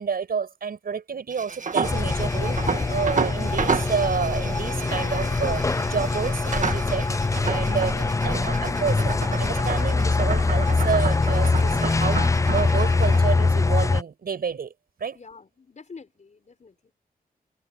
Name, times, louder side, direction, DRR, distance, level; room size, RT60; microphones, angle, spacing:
voice 1, 0.0-5.6 5.9-7.1 7.4-14.7 15.0-15.2, right 6 dB, 75° right, 5.5 m, -29 dB
sound 1, 1.3-13.2, right 5 dB, 55° right, 1.7 m, -32 dB
sound 2, 1.8-14.0, left 3 dB, 20° left, 0.4 m, -23 dB
voice 2, 15.1-16.9, left 4 dB, 50° left, 4.4 m, -46 dB
wide cardioid pair, 85°, 16 cm